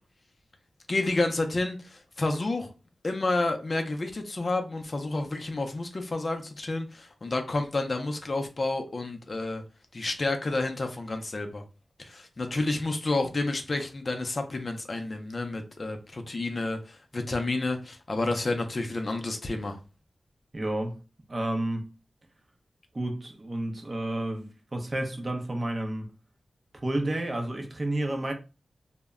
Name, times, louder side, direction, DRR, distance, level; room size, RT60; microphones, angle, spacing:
voice 1, 0.9-2.7 3.0-9.6 9.9-11.6 12.0-19.8, left 2 dB, 45° left, 0.4 m, -30 dB
voice 2, 20.5-21.0 21.3-21.9 22.9-26.1 26.7-28.3, right 1 dB, 35° right, 0.6 m, -31 dB
2.1 x 2.0 x 3.4 m
wide cardioid pair, 95°, 0 cm